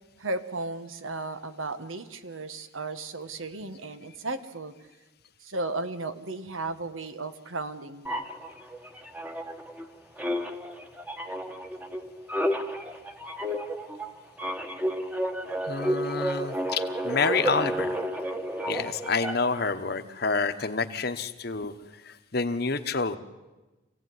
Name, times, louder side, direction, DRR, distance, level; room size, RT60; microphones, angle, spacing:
voice 1, 0.2-4.7 5.4-8.3, right 2 dB, 85° right, 10 dB, 1.5 m, -35 dB
sound 1, 8.0-9.9 10.2-19.7, equal, 10° right, 1.3 m, -31 dB
voice 2, 15.7-18.0 18.7-21.7 22.0-23.2, left 4 dB, 50° left, 10 dB, 1.1 m, -28 dB
26.5 x 16.5 x 9.6 m, 1.2 s
head